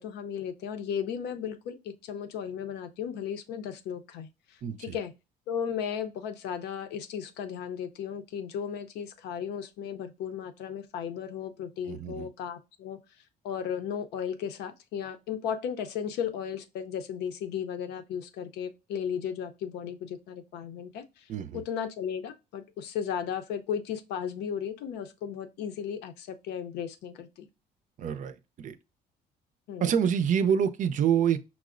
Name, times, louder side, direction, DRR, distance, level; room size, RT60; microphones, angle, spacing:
voice 1, 0.0-5.1 5.5-13.0 13.4-27.5 29.7-29.9, left 8 dB, 80° left, 0.6 m, -35 dB
voice 2, 4.6-5.0 11.8-12.3 21.3-21.6 28.0-28.8 29.8-31.4, right 8 dB, 50° right, 0.5 m, -27 dB
5.8 x 2.0 x 2.4 m
cardioid pair, 110°, 17 cm